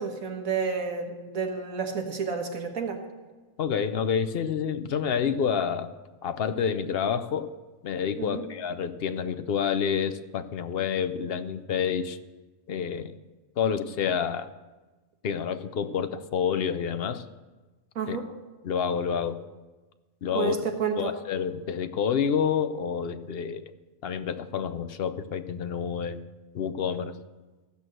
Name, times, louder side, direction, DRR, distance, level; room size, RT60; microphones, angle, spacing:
voice 1, 0.0-3.0 8.2-8.5 18.0-18.3 20.3-21.1, right 5 dB, 75° right, 4 dB, 1.8 m, -30 dB
voice 2, 3.6-5.9 6.2-7.5 7.8-12.2 12.7-13.1 13.6-14.5 15.2-17.2 18.1-18.2 18.6-19.4 20.2-20.6 21.0-23.6 24.0-26.2 26.5-27.2, left 7 dB, 55° left, 10 dB, 0.8 m, -28 dB
15.5 x 6.2 x 7.7 m, 1.2 s
omnidirectional pair, 1.4 m